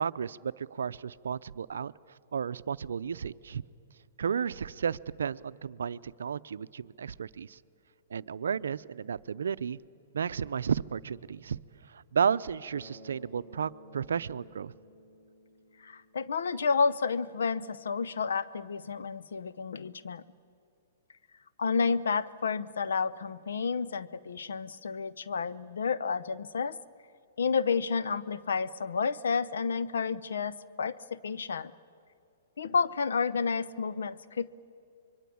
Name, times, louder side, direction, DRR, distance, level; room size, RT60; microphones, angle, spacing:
voice 1, 0.0-1.9 2.3-3.6 4.2-7.6 8.1-9.8 10.1-11.6 11.9-14.7, right 7 dB, 85° right, 16 dB, 0.6 m, -33 dB
Bass guitar, 12.7-16.7, left 1 dB, 45° left, 4.8 m, -54 dB
voice 2, 15.8-20.2 21.6-26.8 27.4-31.7 32.6-34.5, left 5 dB, 85° left, 18 dB, 0.8 m, -30 dB
25.0 x 22.5 x 8.6 m, 2.6 s
hypercardioid pair, 135°, 0 cm